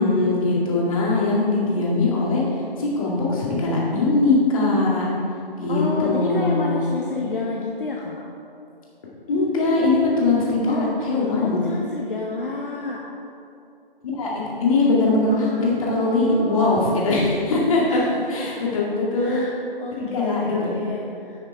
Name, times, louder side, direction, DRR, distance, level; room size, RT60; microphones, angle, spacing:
voice 1, 0.0-2.4 2.8-5.1 5.6-6.8 9.3-11.6 14.2-18.0 18.3-19.4 19.9-20.7, left 3 dB, 35° left, -5 dB, 2.3 m, -21 dB
voice 2, 5.7-8.2 10.7-10.9 11.2-13.0 15.3-16.7 17.9-18.6 19.1-21.4, left 3 dB, 65° left, -1 dB, 1.1 m, -30 dB
10.0 x 5.8 x 4.8 m, 2.6 s
figure-of-eight pair, 155°, 29 cm